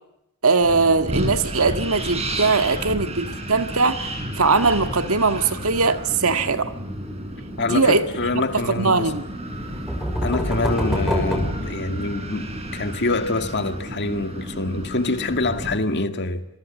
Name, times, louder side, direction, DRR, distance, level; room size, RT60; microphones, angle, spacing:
voice 1, 0.4-4.1 4.4-6.7 7.6-8.0 8.3-9.2, right 4 dB, 70° right, 1.9 m, -20 dB
Wind, 0.6-15.8, right 1 dB, 30° right, 6.4 m, -32 dB
voice 2, 7.6-9.1 10.2-16.5, left 2 dB, 50° left, 2.1 m, -25 dB
sound 1, 9.5-12.4, equal, ahead, 5.5 m, -26 dB
27.0 x 23.0 x 7.3 m
head